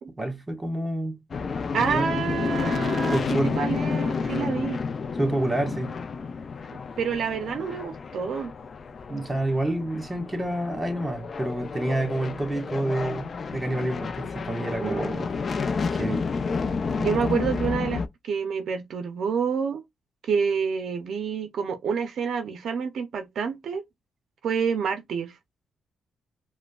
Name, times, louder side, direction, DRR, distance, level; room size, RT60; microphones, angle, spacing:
voice 1, 0.2-1.5 1.8-2.1 3.1-3.6 4.4-4.5 5.2-5.9 9.1-15.4 15.9-16.2, right 1 dB, 20° right, 1.4 m, -28 dB
sound 1, 1.3-18.1, left 5 dB, 50° left, 0.4 m, -30 dB
voice 2, 1.7-4.8 7.0-8.5 14.8-15.1 17.0-19.8 20.2-23.8 24.4-25.4, right 6 dB, 70° right, 0.5 m, -28 dB
4.9 x 2.1 x 2.3 m
supercardioid pair, 60°, 0 cm